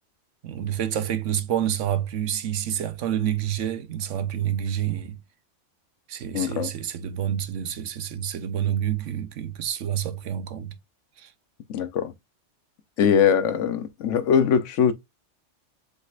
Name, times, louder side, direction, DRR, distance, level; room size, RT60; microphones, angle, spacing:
voice 1, 0.4-5.2 6.1-10.8 11.2-11.3, right 10 dB, 85° right, 1.1 m, -28 dB
voice 2, 6.3-6.7 11.7-12.1 13.0-14.9, left 7 dB, 80° left, 1.1 m, -21 dB
5.1 x 3.9 x 2.4 m
omnidirectional pair, 1.2 m